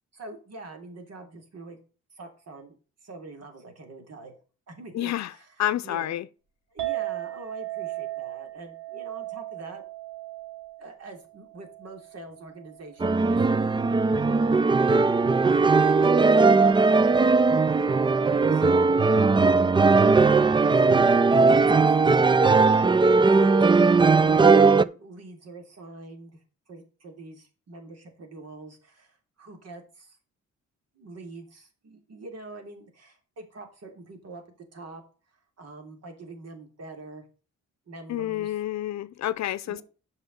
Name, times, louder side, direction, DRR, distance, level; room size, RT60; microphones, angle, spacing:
voice 1, 0.1-1.8 2.1-2.7 3.0-4.4 4.7-6.2 6.7-9.8 10.8-14.0 14.5-14.6 15.5-17.4 17.7-18.6 19.1-19.6 20.3-23.0 23.3-23.8 24.5-30.2 30.9-34.4 34.7-35.0 35.6-37.2 37.9-38.6 39.6-39.8, right 2 dB, 55° right, 3.2 m, -44 dB
voice 2, 4.9-5.3 5.6-6.3 38.1-39.8, left 13 dB, 65° left, 0.7 m, -29 dB
Chink clink, 6.8-13.1, right 16 dB, 85° right, 4.2 m, -37 dB
sound 1, 13.0-24.8, right 4 dB, 15° right, 0.4 m, -19 dB
7.9 x 5.8 x 6.6 m
cardioid pair, 90°, 30 cm